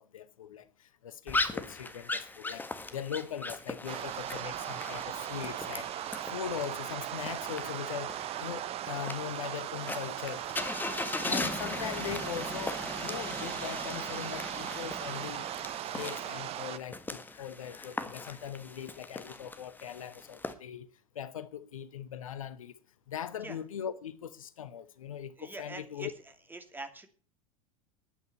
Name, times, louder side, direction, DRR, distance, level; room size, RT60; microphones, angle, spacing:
voice 1, 0.0-2.6 2.9-5.9 6.3-10.4 11.2-15.5 15.9-20.9 21.1-22.7 23.1-26.1, left 9 dB, 70° left, 1.0 m, -40 dB
sound 1, 1.3-20.5, left 3 dB, 10° left, 1.7 m, -39 dB
sound 2, 3.9-16.8, right 12 dB, 35° right, 0.9 m, -38 dB
voice 2, 25.4-27.1, right 2 dB, 10° right, 2.7 m, -44 dB
11.5 x 9.2 x 8.5 m
figure-of-eight pair, 80°, 18 cm